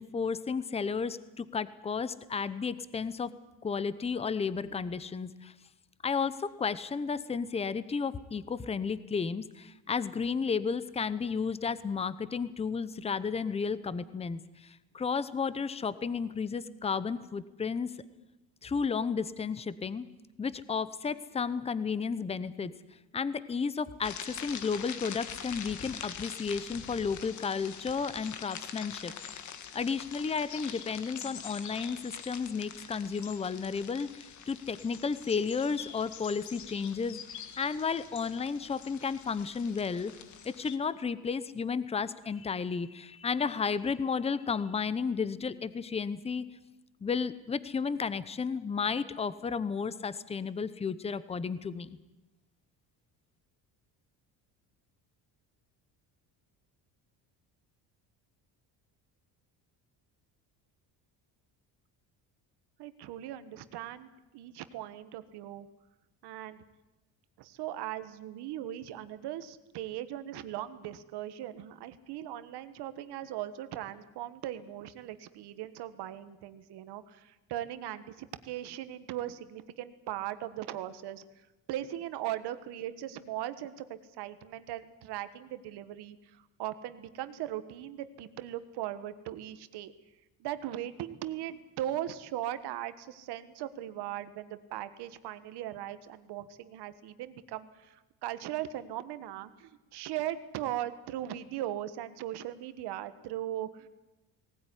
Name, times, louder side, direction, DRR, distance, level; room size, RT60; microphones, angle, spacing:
voice 1, 0.0-3.3 3.6-5.5 6.0-17.9 18.6-20.1 20.4-22.7 23.1-29.1 29.7-40.1 40.4-46.5 47.0-51.9, left 5 dB, 15° left, 16 dB, 0.7 m, -33 dB
sound 1, 24.0-40.8, left 8 dB, 45° left, 1.6 m, -44 dB
voice 2, 62.8-65.7 66.2-66.6 67.4-81.2 81.7-86.2 86.6-89.9 90.4-97.7 98.2-103.9, right 12 dB, 70° right, 12 dB, 1.5 m, -39 dB
19.0 x 18.5 x 9.9 m, 1.0 s
cardioid pair, 155°, 40 cm